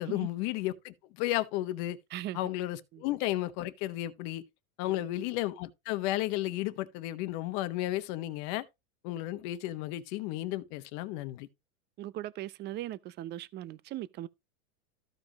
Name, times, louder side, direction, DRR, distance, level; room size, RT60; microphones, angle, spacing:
voice 1, 0.0-2.0 2.3-4.4 4.8-8.6 9.0-11.5, left 15 dB, 50° left, 1.1 m, -33 dB
voice 2, 12.0-14.3, right 14 dB, 25° right, 0.5 m, -39 dB
14.5 x 5.1 x 2.9 m
hypercardioid pair, 125°, 43 cm